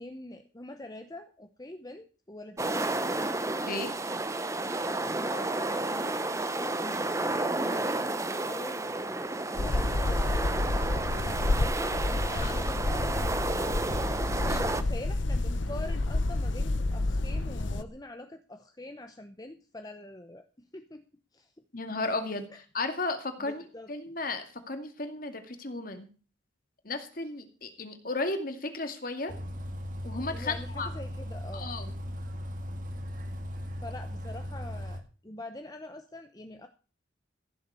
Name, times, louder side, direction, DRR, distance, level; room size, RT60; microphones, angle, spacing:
voice 1, 0.0-3.0 4.9-10.5 10.8-13.9 14.2-20.4 20.7-21.0 21.3-21.5 22.5-22.6 23.4-23.9 30.2-31.7 33.8-36.7, left 1 dB, 20° left, 7 dB, 0.9 m, -44 dB
sound 1, 2.6-14.8, right 2 dB, 15° right, 0.8 m, -31 dB
sound 2, 9.5-17.8, left 2 dB, 80° left, 0.9 m, -29 dB
voice 2, 14.3-14.6 21.7-22.5 22.7-23.6 23.9-26.1 26.8-29.3 30.0-30.9 31.5-31.9, left 2 dB, 45° left, 7 dB, 2.2 m, -34 dB
Bus, 29.3-35.0, equal, 45° right, 1.9 m, -38 dB
15.0 x 7.4 x 6.9 m, 0.37 s
head